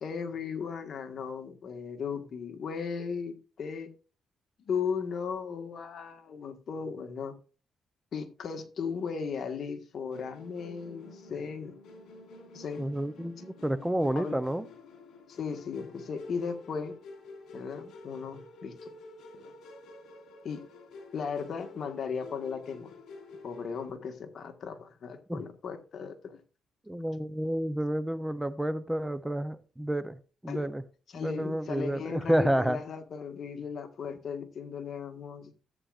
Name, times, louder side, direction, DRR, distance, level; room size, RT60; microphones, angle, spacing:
voice 1, 0.0-3.9 4.6-7.4 8.1-11.7 12.5-12.8 14.1-14.4 15.3-17.0 17.5-18.9 19.3-19.5 20.4-20.6 21.1-22.9 23.4-26.4 30.5-30.7 31.1-35.5, left 6 dB, 55° left, 1.6 m, -36 dB
Musical instrument, 10.1-23.9, left 3 dB, 75° left, 3.0 m, -50 dB
voice 2, 12.8-14.6 25.3-25.4 26.9-30.2 30.4-30.8 31.1-32.8, right 1 dB, 5° right, 0.6 m, -30 dB
14.0 x 8.7 x 2.5 m
cardioid pair, 90°, 0 cm